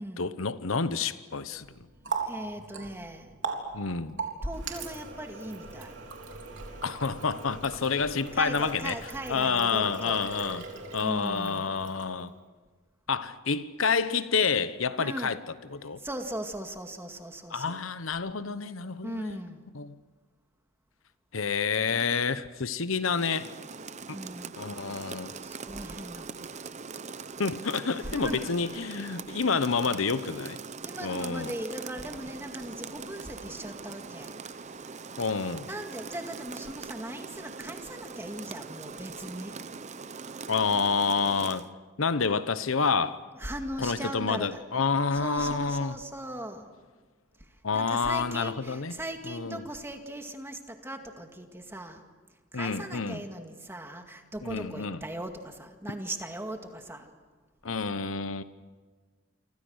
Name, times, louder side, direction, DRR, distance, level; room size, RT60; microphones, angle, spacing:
voice 1, 0.2-1.7 3.7-4.2 6.8-9.0 9.3-10.6 10.9-12.3 13.1-15.4 15.7-16.0 17.5-19.4 19.7-20.0 21.3-23.5 24.1-24.2 24.6-25.3 27.4-30.6 31.0-31.5 35.2-35.7 40.5-41.7 42.0-43.2 43.8-46.0 47.6-49.0 49.3-49.7 52.5-53.2 54.4-55.0 57.6-58.4, left 5 dB, 85° left, 1.0 m, -28 dB
Water tap faucet, 1.5-12.3, right 4 dB, 65° right, 3.7 m, -40 dB
voice 2, 2.2-3.3 4.4-6.0 8.3-10.2 11.0-11.7 15.0-15.4 15.9-17.8 19.0-19.7 24.1-24.5 25.4-26.6 28.0-28.5 30.8-34.7 35.7-39.6 43.4-44.6 45.1-46.7 47.7-52.0 52.5-57.1, right 1 dB, 10° right, 2.1 m, -39 dB
Rain, 23.0-41.7, right 5 dB, 35° right, 0.8 m, -42 dB
28.5 x 25.5 x 6.5 m
head